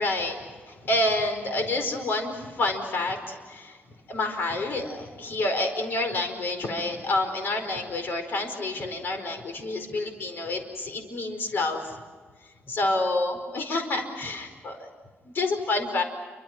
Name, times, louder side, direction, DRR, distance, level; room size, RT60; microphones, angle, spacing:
voice 1, 0.0-3.8 4.1-12.0 12.7-14.9 15.2-16.0, left 2 dB, 60° left, 6 dB, 4.8 m, -28 dB
29.0 x 25.5 x 6.1 m, 1.5 s
wide cardioid pair, 130°, 4 cm